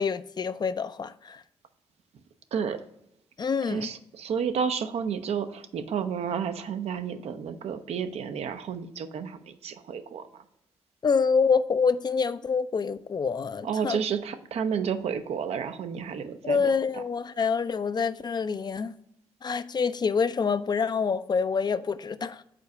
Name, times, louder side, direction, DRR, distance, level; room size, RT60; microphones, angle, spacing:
voice 1, 0.0-1.4 3.4-3.9 11.0-14.0 16.4-18.9 19.4-22.4, left 5 dB, 40° left, 0.4 m, -26 dB
voice 2, 2.5-2.8 3.7-10.4 13.6-16.7, right 7 dB, 70° right, 0.5 m, -31 dB
5.0 x 4.1 x 4.6 m
supercardioid pair, 45°, 11 cm